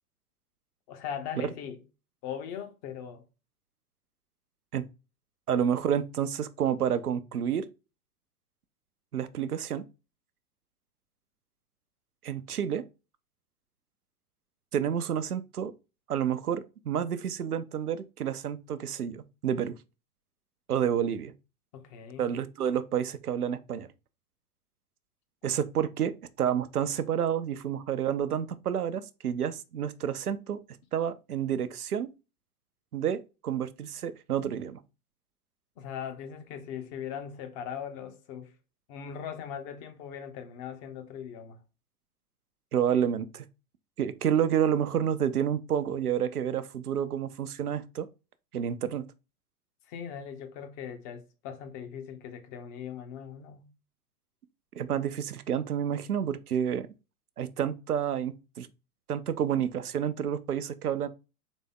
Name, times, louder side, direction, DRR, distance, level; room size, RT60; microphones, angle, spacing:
voice 1, 0.9-1.8 2.2-3.2 5.5-5.8 21.7-22.3 35.8-38.5 38.9-41.6 49.9-53.7, left 8 dB, 30° left, 0.8 m, -40 dB
voice 2, 5.5-7.7 9.1-9.8 12.2-12.8 14.7-15.7 16.1-19.7 20.7-21.3 22.2-23.9 25.4-26.1 26.4-30.6 30.9-32.1 32.9-34.8 42.7-43.5 44.0-48.1 48.5-49.0 54.8-56.9 57.4-58.7 59.1-61.1, right 9 dB, 75° right, 0.6 m, -29 dB
4.1 x 3.4 x 3.6 m
figure-of-eight pair, 100°, 45 cm